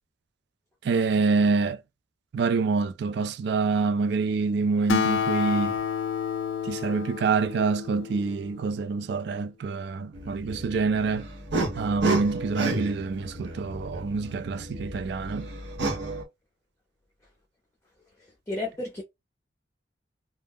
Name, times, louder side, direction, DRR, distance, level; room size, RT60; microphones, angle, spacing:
voice 1, 0.8-1.8 2.3-5.7 6.6-11.3 11.7-15.5, right 4 dB, 65° right, 0.3 m, -26 dB
Acoustic guitar, 4.9-8.6, left 7 dB, 90° left, 0.4 m, -29 dB
sound 1, 10.1-16.2, right 2 dB, 80° right, 0.8 m, -32 dB
voice 2, 18.2-19.0, left 2 dB, 15° left, 0.5 m, -33 dB
2.3 x 2.0 x 3.5 m
head